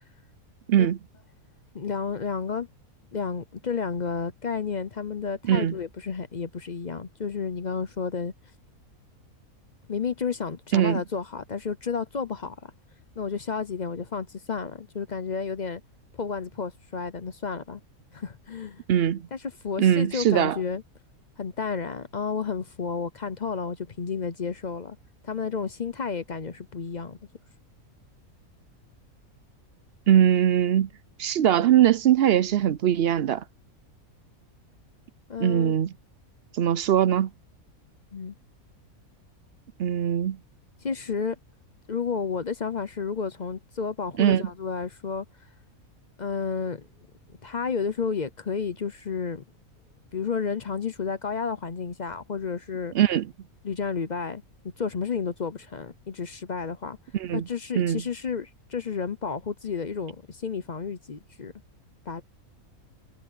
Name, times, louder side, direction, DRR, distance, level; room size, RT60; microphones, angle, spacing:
voice 1, 1.7-2.7 3.1-8.3 9.9-12.5 13.2-15.8 16.2-17.8 18.1-18.8 19.3-19.4 19.6-20.8 21.4-25.0 25.2-27.2 35.3-35.8 38.1-38.3 40.8-41.4 41.9-45.3 46.2-46.9 47.4-49.4 50.1-52.9 53.6-54.4 54.8-57.0 57.3-61.5 62.1-62.2, left 5 dB, 40° left, 0.7 m, -31 dB
voice 2, 18.9-19.2 19.8-20.6 30.1-30.9 31.2-33.4 35.4-35.9 36.5-37.3 39.8-40.4 44.2-44.5 52.9-53.3 57.1-57.4 57.8-58.0, right 10 dB, 65° right, 0.6 m, -21 dB
omnidirectional pair, 1.5 m